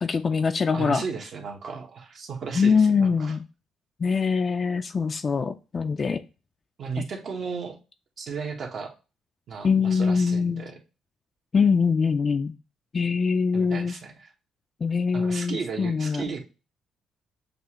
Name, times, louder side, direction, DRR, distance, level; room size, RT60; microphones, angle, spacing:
voice 1, 0.0-1.0 2.5-3.4 4.0-6.2 7.0-7.1 9.6-10.6 11.5-12.5 12.9-14.0 14.8-16.2, left 5 dB, 40° left, 7 dB, 0.3 m, -23 dB
voice 2, 0.7-3.4 6.8-7.8 8.2-8.9 9.5-10.8 13.5-14.3 15.1-16.4, right 5 dB, 60° right, 2 dB, 1.1 m, -34 dB
6.6 x 2.4 x 2.9 m, 0.32 s
supercardioid pair, 70°, 0 cm